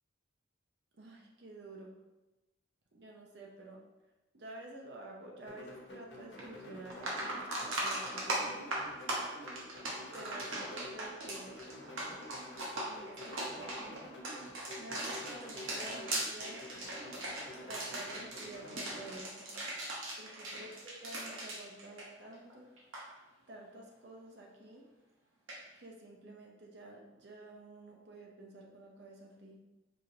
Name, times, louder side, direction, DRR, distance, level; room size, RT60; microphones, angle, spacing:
voice 1, 0.9-2.0 2.9-3.8 4.3-8.7 10.0-11.6 12.9-14.1 14.8-16.7 17.6-19.4 20.2-22.7 23.5-24.9 25.7-29.6, right 2 dB, 55° right, -1 dB, 0.7 m, -50 dB
sound 1, 5.5-19.2, left 1 dB, 60° left, 0.7 m, -50 dB
sound 2, 6.4-6.5 6.9-22.5 22.8-23.0 25.5-25.6, right 1 dB, 85° right, 0.8 m, -39 dB
4.8 x 2.5 x 2.8 m, 1.1 s
head